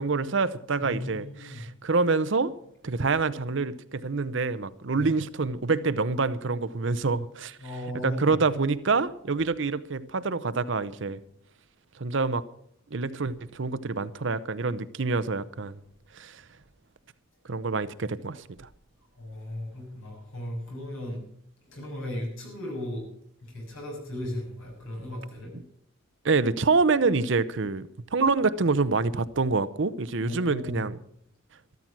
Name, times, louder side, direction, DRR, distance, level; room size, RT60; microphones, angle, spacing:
voice 1, 0.0-2.5 2.8-7.6 8.0-11.2 12.0-12.5 12.9-15.8 16.1-16.4 17.5-18.7 26.2-31.0, right 4 dB, 60° right, 0.7 m, -26 dB
voice 2, 0.8-1.6 5.0-5.1 7.6-8.4 19.2-21.2 21.6-23.0 23.4-25.5 30.2-30.9, left 1 dB, 70° left, 7.1 m, -36 dB
13.5 x 13.0 x 6.0 m
head